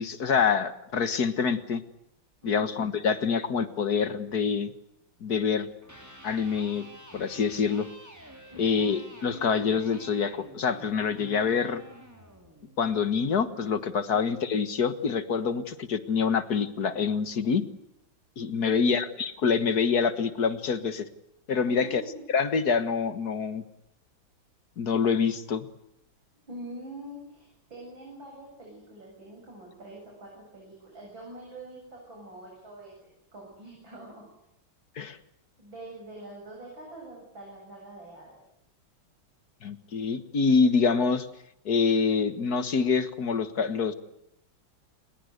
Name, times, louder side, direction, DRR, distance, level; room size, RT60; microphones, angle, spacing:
voice 1, 0.0-1.8 2.4-4.7 5.2-5.7 6.2-6.9 7.1-7.9 8.6-11.8 12.8-17.6 18.4-21.1 21.5-22.0 22.3-23.6 24.8-25.7 35.0-35.2 39.6-41.3 41.7-43.9, left 5 dB, 55° left, 12 dB, 1.9 m, -26 dB
voice 2, 2.4-2.8 8.5-8.9 14.1-14.2 18.6-19.1 21.7-22.2 26.5-34.2 35.6-38.4, right 1 dB, 85° right, -2 dB, 8.9 m, -45 dB
Electric guitar, 5.7-13.8, right 1 dB, 10° right, 5.0 m, -49 dB
30.0 x 21.5 x 8.1 m, 0.78 s
omnidirectional pair, 2.1 m